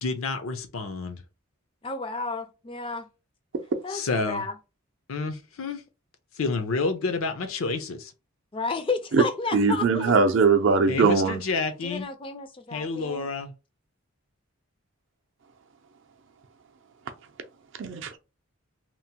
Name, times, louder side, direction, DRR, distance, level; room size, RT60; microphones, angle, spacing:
voice 1, 0.0-1.2 3.9-4.4 5.1-5.8 6.4-8.1 10.9-12.1 12.7-13.5, left 3 dB, 75° left, 0.6 m, -29 dB
voice 2, 1.8-3.1 3.8-4.5 8.5-10.1 11.8-13.3, left 4 dB, 25° left, 0.4 m, -32 dB
voice 3, 9.5-11.4 17.8-18.2, right 4 dB, 60° right, 0.5 m, -20 dB
2.9 x 2.1 x 2.8 m
head